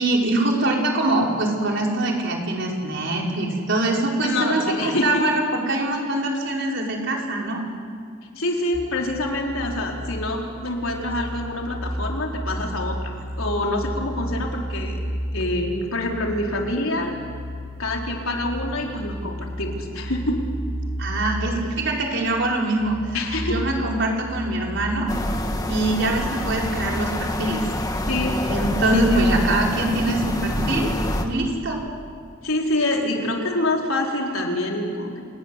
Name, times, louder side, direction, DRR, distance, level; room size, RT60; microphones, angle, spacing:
voice 1, 0.0-7.6 21.0-23.2 23.4-25.1 25.7-27.6 28.5-30.9 31.2-31.8, right 2 dB, 60° right, -1 dB, 5.2 m, -23 dB
voice 2, 4.2-5.2 8.4-15.0 15.3-17.2 17.8-20.4 23.1-23.6 28.1-28.4 28.9-29.6 32.4-35.2, left 1 dB, 85° left, 0 dB, 4.2 m, -26 dB
sound 1, 8.7-25.0, equal, 15° right, 2.1 m, -33 dB
sound 2, 25.1-31.3, left 1 dB, 20° left, 1.9 m, -26 dB
29.5 x 19.0 x 9.9 m, 2.2 s
head